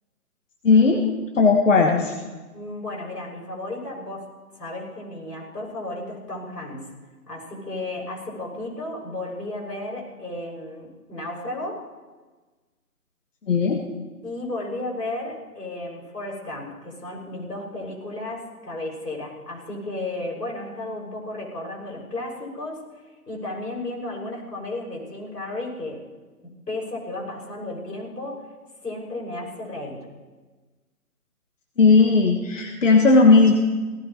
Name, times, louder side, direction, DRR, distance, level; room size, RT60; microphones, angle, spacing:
voice 1, 0.6-1.0 1.3-2.1 13.5-13.8 31.8-33.6, left 4 dB, 50° left, 2 dB, 1.6 m, -16 dB
voice 2, 2.5-4.3 4.6-6.9 7.3-11.8 14.2-22.8 23.3-26.0 26.4-28.5 28.8-30.1, left 2 dB, 85° left, -3 dB, 6.4 m, -33 dB
17.5 x 15.5 x 4.3 m, 1.3 s
figure-of-eight pair, 160°, 47 cm